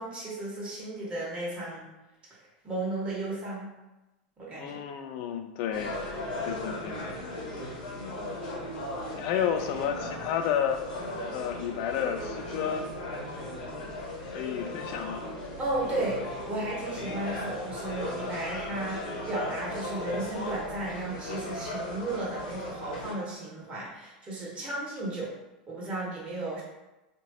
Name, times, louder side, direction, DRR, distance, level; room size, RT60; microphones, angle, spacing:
voice 1, 0.0-1.8 2.6-3.7 4.4-4.8 15.6-25.3 25.7-26.6, right 2 dB, 25° right, -6 dB, 1.4 m, -34 dB
voice 2, 4.6-6.2 6.4-7.0 9.1-10.8 11.3-12.9 14.3-15.2, left 8 dB, 60° left, 7 dB, 0.4 m, -31 dB
sound 1, 5.7-23.1, left 1 dB, 90° left, 0.9 m, -37 dB
3.0 x 2.5 x 2.8 m, 1.0 s
supercardioid pair, 115°, 5 cm